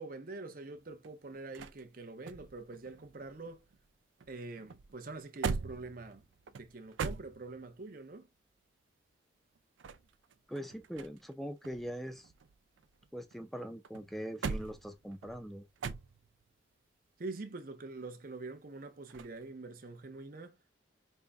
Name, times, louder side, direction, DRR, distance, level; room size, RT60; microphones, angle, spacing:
voice 1, 0.0-3.6 4.3-6.3 6.6-8.3 17.2-20.6, right 3 dB, 50° right, 0.7 m, -45 dB
sound 1, 0.8-3.9 4.2-7.8 9.5-11.3 11.6-13.4 13.8-16.5 19.1-19.4, right 5 dB, 85° right, 0.4 m, -42 dB
voice 2, 10.5-12.3 13.1-15.6, equal, ahead, 0.5 m, -42 dB
5.4 x 2.2 x 3.4 m
head